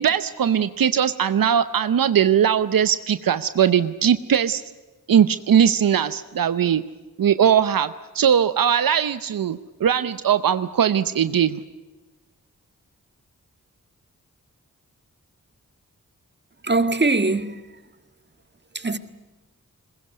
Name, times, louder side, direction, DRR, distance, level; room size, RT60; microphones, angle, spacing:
voice 1, 0.0-4.6 5.1-6.8 7.2-11.6, right 8 dB, 85° right, 0.8 m, -20 dB
voice 2, 16.6-17.7 18.7-19.0, right 3 dB, 30° right, 1.7 m, -22 dB
21.5 x 21.0 x 9.6 m
cardioid pair, 45°, 33 cm